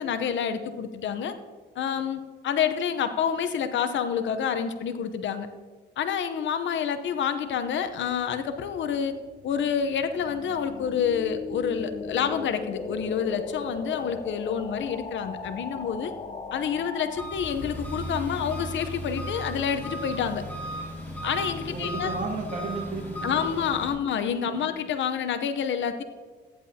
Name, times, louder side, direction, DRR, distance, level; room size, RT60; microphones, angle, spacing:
voice 1, 0.0-1.3 1.8-5.5 6.0-9.1 9.4-16.1 16.5-20.4 21.2-22.1 23.2-26.0, left 7 dB, 70° left, 9 dB, 0.8 m, -28 dB
sound 1, 8.1-17.3, left 4 dB, 30° left, 0.8 m, -38 dB
Engine, 17.1-23.9, equal, 10° left, 3.3 m, -35 dB
voice 2, 21.7-23.6 24.5-24.7, right 3 dB, 40° right, 1 dB, 2.1 m, -34 dB
14.5 x 10.0 x 2.8 m, 1.4 s
cardioid pair, 90°, 20 cm